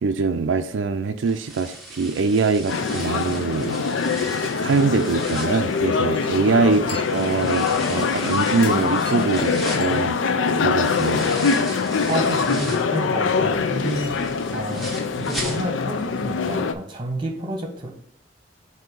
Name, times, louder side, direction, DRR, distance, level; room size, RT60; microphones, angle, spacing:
voice 1, 0.0-3.8 4.5-11.3, right 4 dB, 80° right, 0.4 m, -23 dB
sound 1, 1.2-6.5 7.0-13.0 13.4-16.0 16.3-16.4 16.9-17.0, right 1 dB, ahead, 1.1 m, -38 dB
sound 2, 2.7-16.7, left 5 dB, 85° left, 0.5 m, -23 dB
Chink clink, 6.1-11.1, left 2 dB, 30° left, 0.9 m, -40 dB
voice 2, 12.1-14.2 14.5-14.9 15.1-17.9, right 1 dB, 25° right, 1.2 m, -30 dB
7.6 x 2.7 x 5.3 m
head